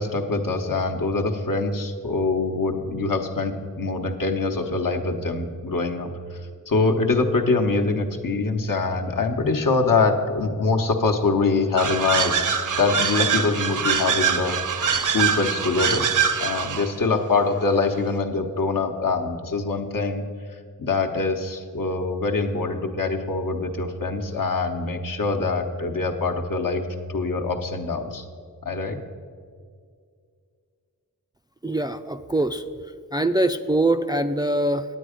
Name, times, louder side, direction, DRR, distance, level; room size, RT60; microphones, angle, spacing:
voice 1, 0.0-6.4 6.7-12.4 12.8-16.1 16.4-20.2 20.8-26.8 27.1-28.2 28.6-29.0, left 3 dB, 65° left, 4 dB, 1.0 m, -24 dB
sound 1, 11.8-16.9, right 7 dB, 60° right, 0.7 m, -24 dB
voice 2, 31.6-32.6 33.1-34.9, right 1 dB, 15° right, 7 dB, 0.3 m, -23 dB
9.0 x 9.0 x 5.0 m, 2.2 s
cardioid pair, 55°, 35 cm